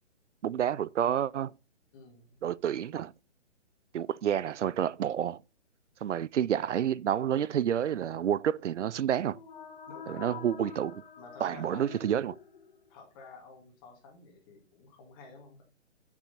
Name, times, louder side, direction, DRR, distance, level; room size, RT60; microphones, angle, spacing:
voice 1, 0.4-1.5 2.4-3.1 3.9-5.4 6.0-9.4 10.1-11.0 11.4-12.4, right 9 dB, 80° right, 0.6 m, -29 dB
voice 2, 1.9-2.3 9.9-10.5 11.2-12.0 12.9-15.6, left 4 dB, 20° left, 2.2 m, -51 dB
sound 1, 9.2-13.0, left 6 dB, 40° left, 1.6 m, -47 dB
12.0 x 6.2 x 4.2 m
hypercardioid pair, 165°, 36 cm